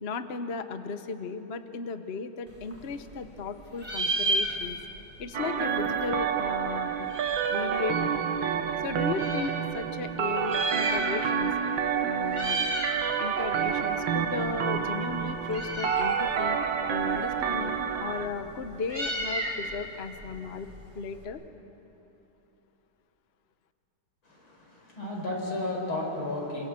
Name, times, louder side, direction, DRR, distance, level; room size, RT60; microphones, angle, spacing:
voice 1, 0.0-4.8 5.2-7.1 7.5-8.2 8.8-11.5 12.0-12.6 13.2-16.6 16.9-21.4, left 4 dB, 45° left, 9 dB, 0.9 m, -35 dB
Meow, 2.5-3.5 3.7-5.0 5.3-5.4 5.6-7.7 8.3-9.5 10.3-11.5 11.8-12.0 12.3-13.0 13.4-21.2, right 1 dB, 15° right, 3.6 m, -33 dB
sound 1, 5.3-18.3, right 7 dB, 70° right, 1.8 m, -29 dB
voice 2, 24.2-26.7, left 2 dB, 80° left, -1 dB, 5.8 m, -33 dB
27.0 x 26.0 x 7.6 m, 3.0 s
omnidirectional pair, 2.3 m